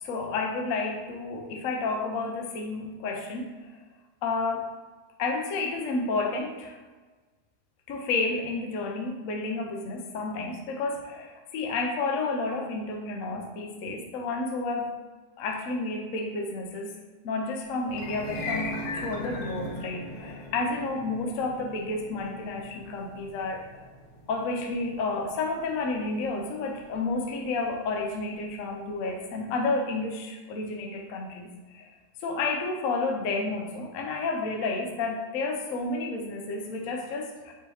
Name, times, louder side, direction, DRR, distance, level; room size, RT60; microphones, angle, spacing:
voice 1, 0.0-3.5 4.2-4.7 5.2-6.8 7.9-14.9 15.4-17.0 17.2-23.9 24.3-31.9 32.2-37.5, left 3 dB, 65° left, 1 dB, 0.8 m, -31 dB
sound 1, 17.9-28.2, left 1 dB, 90° left, 1.4 m, -39 dB
5.4 x 2.7 x 3.3 m, 1.3 s
omnidirectional pair, 1.9 m